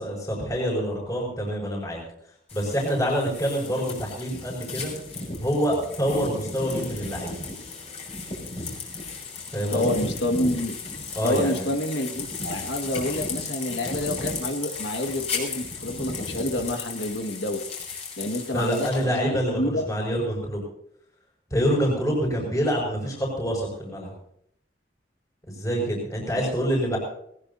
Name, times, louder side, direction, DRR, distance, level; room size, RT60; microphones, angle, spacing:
voice 1, 0.0-2.0 2.5-4.9 5.4-7.3 9.5-10.1 11.1-11.7 18.5-20.6 21.5-24.1 25.5-27.0, equal, 20° left, -2 dB, 6.0 m, -26 dB
sound 1, 2.5-19.0, left 3 dB, 35° left, 6.5 m, -35 dB
voice 2, 9.7-10.7 11.2-17.6 18.2-19.8 26.4-26.5, left 1 dB, 80° left, 4 dB, 1.9 m, -28 dB
21.0 x 20.0 x 2.8 m, 0.70 s
head